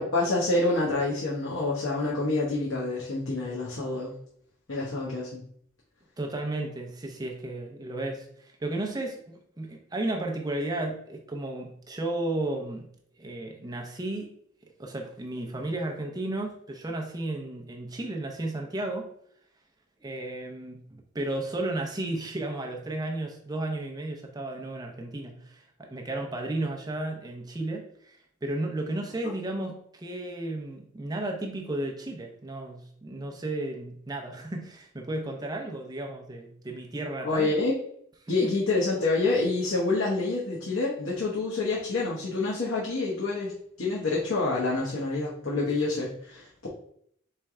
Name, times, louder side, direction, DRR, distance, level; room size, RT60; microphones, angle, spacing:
voice 1, 0.0-4.1 4.7-5.4 29.2-29.3 37.2-37.7 38.3-43.5 43.8-46.7, left 3 dB, 70° left, -5 dB, 0.9 m, -27 dB
voice 2, 6.2-12.9 13.2-14.3 14.8-19.1 20.0-37.5 38.2-38.5, right 2 dB, 20° right, 1 dB, 0.5 m, -33 dB
4.3 x 3.3 x 3.6 m, 0.67 s
head